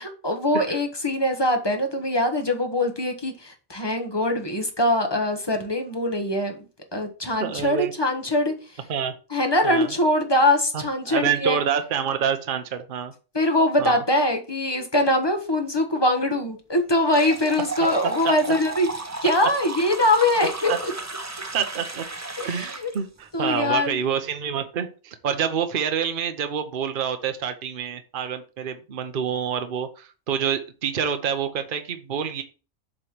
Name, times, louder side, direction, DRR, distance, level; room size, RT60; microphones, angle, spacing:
voice 1, 0.0-6.6 6.9-8.5 9.3-11.6 13.3-18.9 19.2-20.9 22.4-22.9 23.3-24.0, left 1 dB, 20° left, 1.1 m, -23 dB
voice 2, 7.4-7.9 8.9-9.1 9.6-9.9 10.7-13.1 13.8-14.0 18.2-18.5 20.7-20.8 21.5-22.0 22.4-32.4, right 7 dB, 45° right, 0.9 m, -27 dB
sound 1, 17.1-23.0, right 3 dB, 20° right, 0.5 m, -34 dB
7.8 x 3.2 x 5.9 m
omnidirectional pair, 1.5 m